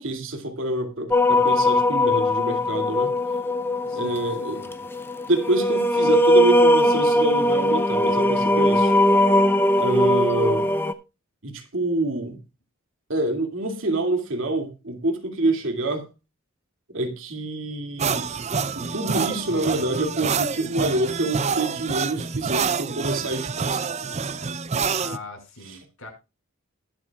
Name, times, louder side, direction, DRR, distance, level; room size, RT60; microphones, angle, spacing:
voice 1, 0.0-3.1 3.9-4.6 5.3-8.9 9.7-10.7 11.4-12.4 13.1-16.1 16.9-18.3 18.7-23.8 25.7-25.8, right 2 dB, 65° right, 2.5 m, -26 dB
sound 1, 1.1-10.9, left 1 dB, 10° left, 0.6 m, -20 dB
voice 2, 3.8-4.7 25.0-26.1, left 3 dB, 85° left, 5.4 m, -41 dB
sound 2, 18.0-25.2, right 5 dB, 30° right, 0.5 m, -27 dB
21.0 x 7.4 x 2.4 m
head